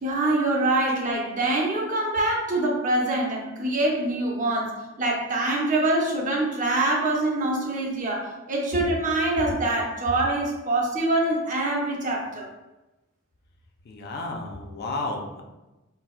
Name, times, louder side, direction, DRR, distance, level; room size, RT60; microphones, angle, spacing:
voice 1, 0.0-12.5, right 2 dB, 40° right, -1 dB, 0.6 m, -25 dB
voice 2, 13.9-15.4, left 2 dB, 50° left, 1 dB, 0.4 m, -32 dB
3.9 x 2.2 x 2.3 m, 1.0 s
head